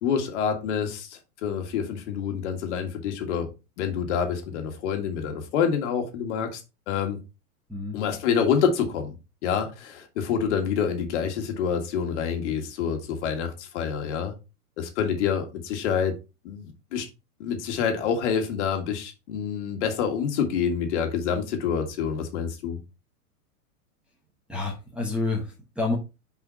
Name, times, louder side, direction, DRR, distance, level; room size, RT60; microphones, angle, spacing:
voice 1, 0.0-3.5 3.8-6.6 6.9-7.2 7.9-9.1 9.4-14.3 14.8-16.2 16.4-17.1 17.4-22.8, left 7 dB, 50° left, 1.8 m, -27 dB
voice 2, 24.5-26.0, left 3 dB, ahead, 1.0 m, -29 dB
5.8 x 5.0 x 4.0 m
supercardioid pair, 155°, 45 cm